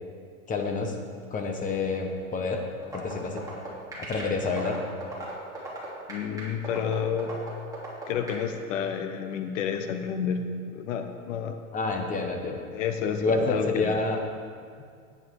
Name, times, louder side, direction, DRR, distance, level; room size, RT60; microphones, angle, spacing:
voice 1, 0.5-1.0 1.3-2.7 2.9-3.4 4.0-4.8 11.7-12.6 13.2-14.2, left 3 dB, 20° left, 3 dB, 1.2 m, -28 dB
sound 1, 2.8-8.4, right 3 dB, 10° right, 3.0 m, -37 dB
voice 2, 6.1-7.3 8.1-11.6 12.7-13.9, left 7 dB, 60° left, 6 dB, 1.1 m, -30 dB
10.5 x 9.4 x 4.8 m, 2.2 s
hypercardioid pair, 130°, 43 cm